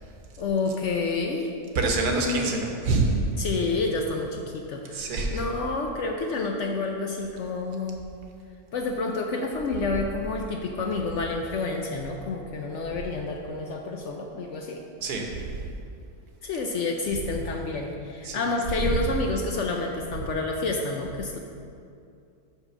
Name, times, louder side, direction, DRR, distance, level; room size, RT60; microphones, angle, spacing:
voice 1, 0.4-1.5 2.0-2.5 3.4-8.0 8.7-14.8 16.4-21.4, left 3 dB, 65° left, 2 dB, 0.7 m, -29 dB
voice 2, 1.7-3.2 4.9-5.4 15.0-15.7 18.2-18.4 18.8-19.2 20.2-20.3, right 3 dB, 80° right, 2 dB, 1.4 m, -26 dB
5.7 x 5.4 x 5.9 m, 2.5 s
omnidirectional pair, 1.6 m